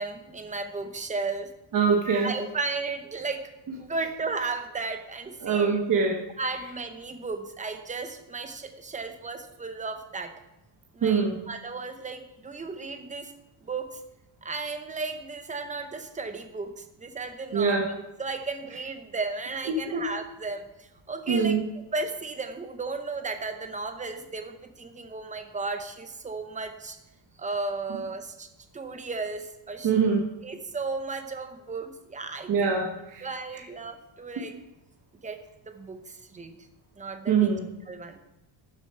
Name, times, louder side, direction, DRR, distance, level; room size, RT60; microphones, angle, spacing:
voice 1, 0.0-1.5 2.1-3.4 3.8-5.9 6.4-10.3 10.9-13.3 13.6-14.0 14.4-17.9 18.2-21.6 21.9-27.0 27.4-28.5 28.7-29.9 30.4-32.8 33.2-34.5 35.2-35.4 35.7-36.5 37.0-37.5 37.9-38.2, right 3 dB, 15° right, 7 dB, 0.7 m, -34 dB
voice 2, 1.7-2.3 5.4-6.2 11.0-11.5 17.5-17.9 19.7-20.0 21.3-21.7 29.8-30.3 32.5-33.3 33.5-33.6 34.4-34.5 37.3-37.7, right 5 dB, 40° right, 1 dB, 1.1 m, -24 dB
12.0 x 7.0 x 4.4 m, 0.95 s
cardioid pair, 175°, 48 cm